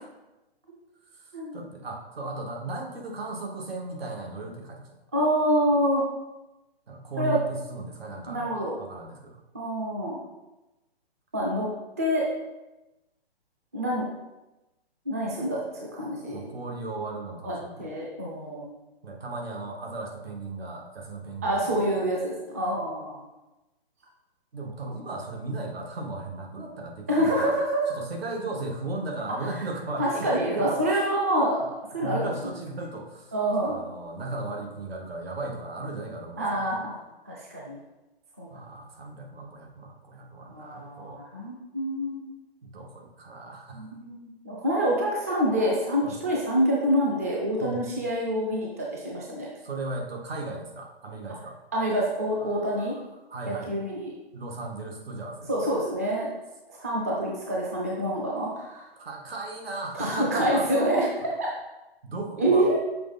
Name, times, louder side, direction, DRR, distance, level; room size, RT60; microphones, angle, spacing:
voice 1, 1.5-4.9 6.9-9.4 16.3-17.9 19.0-21.9 24.5-27.5 28.0-30.8 32.0-33.3 33.7-36.8 38.5-41.2 42.6-43.9 46.0-46.2 47.6-47.8 49.6-51.6 52.4-53.0 53.3-53.7 54.3-55.7 59.0-60.7 62.0-62.7, right 2 dB, 70° right, 1 dB, 1.6 m, -36 dB
voice 2, 5.1-6.0 7.2-7.4 8.3-8.8 9.5-10.2 11.3-11.7 12.0-12.2 13.7-14.0 15.1-15.6 15.9-16.4 17.4-18.7 21.4-23.2 27.1-27.8 30.0-31.6 31.9-32.3 33.3-33.8 36.4-37.0 37.3-37.8 38.4-38.5 40.5-42.3 43.7-49.5 51.7-53.0 53.5-54.1 55.5-56.3 56.7-58.9 60.0-61.5 62.4-62.8, right 1 dB, 15° right, -3 dB, 0.4 m, -26 dB
6.7 x 4.0 x 4.0 m, 1.0 s
hypercardioid pair, 165°, 31 cm